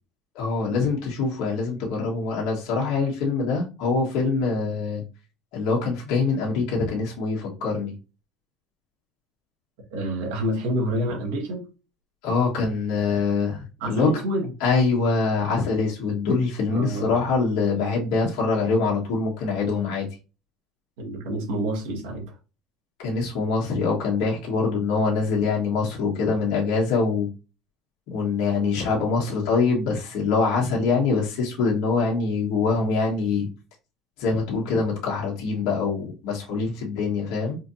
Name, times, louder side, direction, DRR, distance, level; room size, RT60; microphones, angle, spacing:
voice 1, 0.3-5.0 5.5-7.9 12.2-14.1 14.6-20.1 23.0-27.3 28.1-33.5 34.2-37.6, left 4 dB, 75° left, 1.4 m, -24 dB
voice 2, 9.9-11.7 13.8-14.5 16.7-17.2 21.0-22.3, right 1 dB, 90° right, 1.5 m, -28 dB
4.4 x 2.8 x 2.7 m
supercardioid pair, 110°, 0 cm